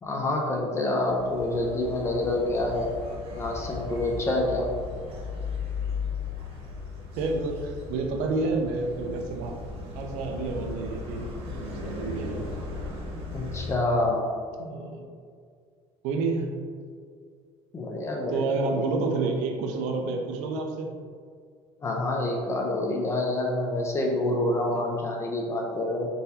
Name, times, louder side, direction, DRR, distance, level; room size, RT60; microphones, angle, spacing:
voice 1, 0.0-2.9 3.4-4.7 13.3-14.3 17.7-18.9 21.8-26.1, left 2 dB, 20° left, 0 dB, 0.4 m, -27 dB
sound 1, 1.1-13.8, left 4 dB, 55° right, 1.0 m, -36 dB
voice 2, 7.2-9.5 9.9-11.3 11.6-12.5 14.6-15.0 16.0-16.5 18.3-20.9 24.6-24.8, right 3 dB, 85° right, 2 dB, 0.6 m, -29 dB
3.9 x 3.9 x 2.8 m, 2.1 s
cardioid pair, 155°, 12 cm